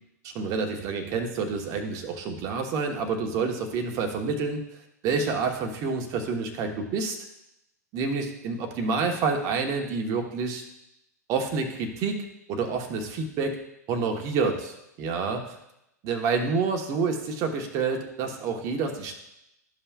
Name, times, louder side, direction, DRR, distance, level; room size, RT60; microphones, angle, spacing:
voice 1, 0.2-4.6 5.0-7.2 7.9-10.6 11.3-13.6 13.9-15.6 16.0-19.2, right 4 dB, 35° right, 4 dB, 1.1 m, -28 dB
13.0 x 5.6 x 2.4 m, 0.84 s
figure-of-eight pair, 95°, 9 cm